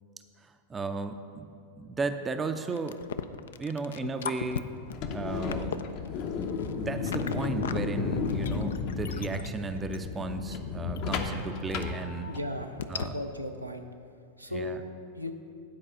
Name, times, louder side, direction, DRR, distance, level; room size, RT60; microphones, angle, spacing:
voice 1, 0.4-1.5 1.8-3.0 3.6-4.7 5.1-5.8 6.3-6.5 6.8-12.3 12.9-13.1 14.5-14.8, right 3 dB, 15° right, 8 dB, 0.5 m, -34 dB
sound 1, 2.7-7.8 8.1-10.0 10.5-10.6 11.0-11.1 11.4-11.5 11.7-11.8 12.4-12.5 12.8-13.1, left 8 dB, 65° left, 0.4 m, -37 dB
sound 2, 4.8-12.7, left 5 dB, 45° left, 0.7 m, -33 dB
voice 2, 12.3-13.9 14.4-14.8 15.2-15.3, left 1 dB, 90° right, 4 dB, 0.6 m, -36 dB
9.8 x 4.8 x 6.7 m, 2.3 s
figure-of-eight pair, 90°, 0 cm